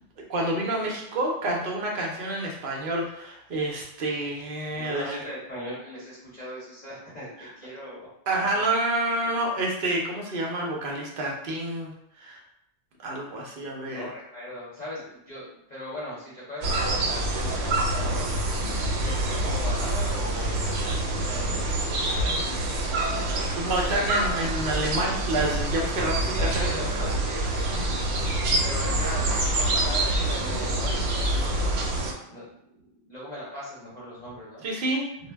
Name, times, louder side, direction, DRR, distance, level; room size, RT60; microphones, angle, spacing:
voice 1, 0.3-5.2 8.3-12.4 13.0-14.1 23.2-26.5 34.6-35.1, right 1 dB, 55° right, -1 dB, 0.7 m, -28 dB
voice 2, 4.7-8.1 8.5-8.7 9.2-9.3 13.6-18.3 19.0-22.6 26.3-28.3 28.6-31.8 32.3-34.6 35.2-35.3, equal, 40° left, -9 dB, 0.8 m, -39 dB
sound 1, 16.6-32.1, right 1 dB, 80° right, 0.9 m, -26 dB
2.1 x 2.0 x 3.3 m, 0.78 s
omnidirectional pair, 1.3 m